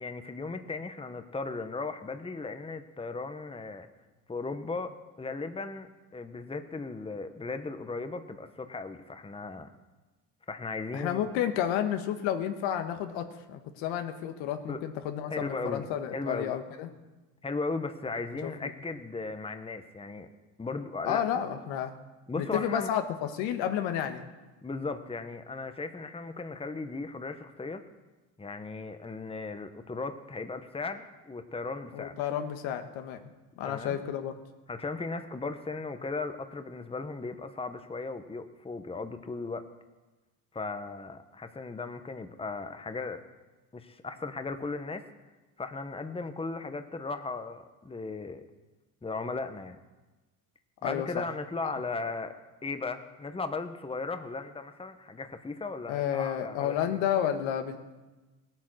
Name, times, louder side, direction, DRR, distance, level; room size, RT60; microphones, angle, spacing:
voice 1, 0.0-3.9 4.3-9.7 10.5-11.3 14.7-14.8 15.3-15.9 16.1-16.6 17.4-20.3 20.6-21.2 22.3-22.9 24.6-27.8 28.4-32.2 33.6-34.0 34.7-39.7 40.5-43.2 43.7-45.1 45.6-48.4 49.0-49.8 50.8-52.4 52.6-56.7, left 3 dB, 10° left, 8 dB, 1.1 m, -36 dB
voice 2, 10.9-16.9 18.4-18.7 21.0-21.9 22.3-24.3 31.9-33.2 33.6-34.3 50.8-51.2 55.9-57.8, left 10 dB, 75° left, 7 dB, 1.5 m, -31 dB
17.5 x 8.8 x 6.4 m, 1.2 s
supercardioid pair, 80°, 46 cm